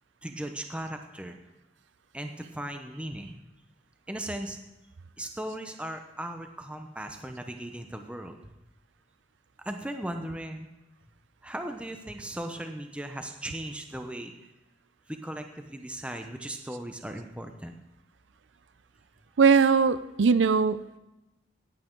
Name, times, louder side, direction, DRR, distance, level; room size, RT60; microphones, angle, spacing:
voice 1, 0.2-1.4 2.1-3.4 4.1-4.6 5.2-8.4 9.6-10.7 11.4-14.3 15.1-17.8, right 1 dB, 5° right, 5 dB, 0.8 m, -37 dB
voice 2, 19.4-21.0, right 5 dB, 85° right, 15 dB, 0.5 m, -21 dB
18.0 x 8.3 x 3.8 m, 0.96 s
head